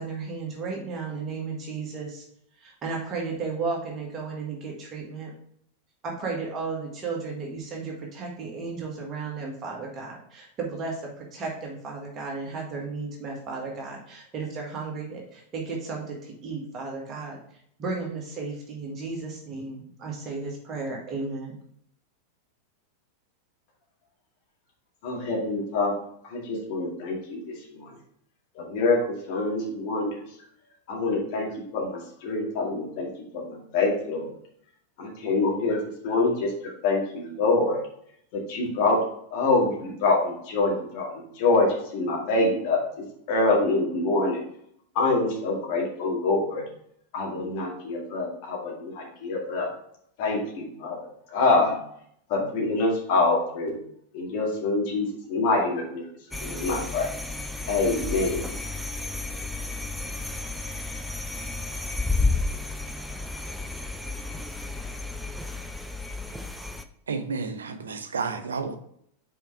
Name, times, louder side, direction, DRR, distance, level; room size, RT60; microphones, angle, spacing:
voice 1, 0.0-2.2 2.6-5.3 6.0-17.4 17.8-21.6, right 4 dB, 30° right, -1 dB, 1.6 m, -34 dB
voice 2, 25.0-25.9 26.2-27.9 28.5-30.2 30.9-33.1 33.3-34.3 35.0-36.5 36.8-37.8 38.3-39.0 39.3-42.8 43.3-44.4 44.9-46.6 47.1-49.7 50.2-51.0 51.3-51.8 52.3-53.8 54.1-56.0 56.4-57.1 57.7-58.5, left 3 dB, 45° left, -2 dB, 2.2 m, -25 dB
sound 1, 56.3-66.8, left 3 dB, ahead, 0.5 m, -32 dB
voice 3, 67.1-68.8, right 4 dB, 70° right, 9 dB, 0.7 m, -31 dB
5.6 x 4.4 x 4.9 m, 0.68 s
figure-of-eight pair, 90°, 0 cm